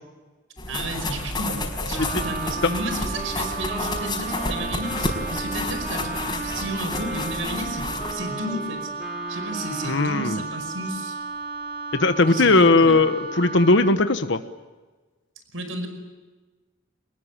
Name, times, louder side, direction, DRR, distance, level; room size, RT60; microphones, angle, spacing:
sound 1, 0.6-8.1, left 2 dB, 20° left, 5.0 m, -30 dB
voice 1, 0.7-8.9 9.3-11.2 12.3-13.0 15.5-15.9, right 1 dB, 85° right, 8 dB, 5.2 m, -32 dB
Wind instrument woodwind instrument, 1.9-10.5, right 1 dB, 5° right, 2.5 m, -37 dB
Wind instrument woodwind instrument 2, 2.0-14.0, right 4 dB, 50° right, 2.6 m, -34 dB
voice 2, 9.8-10.4 11.9-14.4, left 3 dB, 70° left, 10 dB, 1.2 m, -18 dB
26.0 x 21.0 x 9.9 m, 1.3 s
head